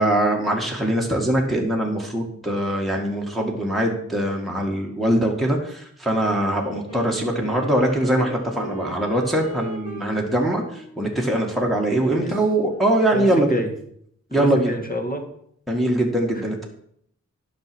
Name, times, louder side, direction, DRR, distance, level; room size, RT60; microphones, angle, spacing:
voice 1, 0.0-13.6 14.3-14.7 15.7-16.6, right 1 dB, ahead, -1 dB, 1.9 m, -22 dB
Wind instrument woodwind instrument, 6.4-13.1, right 1 dB, 50° left, 1.8 m, -39 dB
voice 2, 11.9-12.4 13.1-13.7 14.4-15.3 16.3-16.4, equal, 30° left, 5 dB, 1.7 m, -29 dB
9.4 x 6.3 x 6.1 m, 0.69 s
wide cardioid pair, 65°, 30 cm